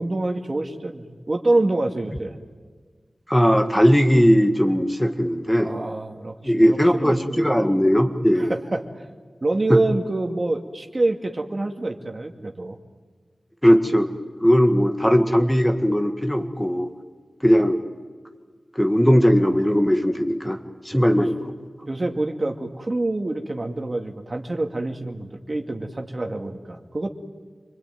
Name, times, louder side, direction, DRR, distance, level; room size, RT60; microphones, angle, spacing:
voice 1, 0.0-2.4 5.6-7.5 8.4-9.0 9.4-12.8 20.9-21.3 21.8-27.1, right 2 dB, 40° right, 4 dB, 2.3 m, -26 dB
voice 2, 3.3-5.7 6.4-8.5 9.7-9.8 13.6-14.1 14.4-16.9 17.4-17.8 18.8-20.6 20.9-21.3, equal, 10° left, 5 dB, 1.9 m, -18 dB
28.0 x 22.5 x 9.4 m, 1.5 s
wide cardioid pair, 70°, 0 cm